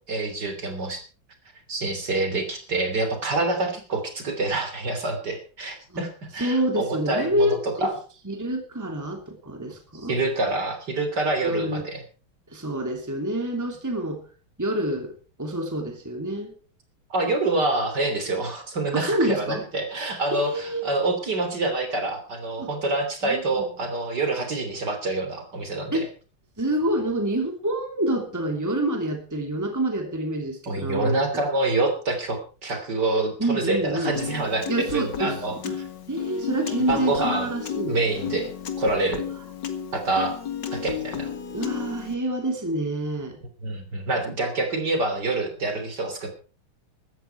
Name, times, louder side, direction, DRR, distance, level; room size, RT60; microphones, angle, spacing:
voice 1, 0.1-1.0 1.7-7.9 9.9-12.0 17.1-26.1 30.7-35.6 36.9-37.5 37.8-38.5 38.8-39.3 39.9-40.4 40.7-41.3 43.6-46.3, right 2 dB, 50° right, 6 dB, 3.8 m, -26 dB
voice 2, 6.4-7.9 8.2-10.1 11.4-11.8 12.5-14.2 14.6-16.5 18.9-19.6 20.3-20.9 22.6-22.7 23.2-23.7 25.9-26.1 26.6-31.4 33.4-34.1 34.7-35.4 35.6-35.8 36.1-38.0 41.5-43.4, right 1 dB, 10° right, 4 dB, 2.7 m, -27 dB
Piano, 34.1-42.2, left 8 dB, 55° left, 2.3 m, -33 dB
16.5 x 13.5 x 4.6 m, 0.38 s
omnidirectional pair, 2.3 m